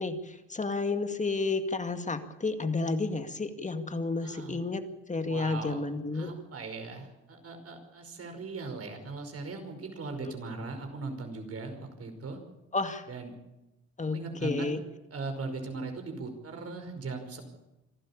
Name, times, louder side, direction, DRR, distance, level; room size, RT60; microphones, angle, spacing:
voice 1, 0.0-4.8 5.1-6.3 10.2-10.3 12.7-13.1 14.0-14.8, left 3 dB, 25° left, 8 dB, 2.1 m, -31 dB
voice 2, 4.2-4.6 5.2-5.8 6.1-12.4 13.1-13.3 14.1-14.7 15.1-17.4, right 3 dB, 50° right, 6 dB, 5.4 m, -39 dB
26.5 x 12.5 x 8.7 m, 0.96 s
cardioid pair, 90°, 30 cm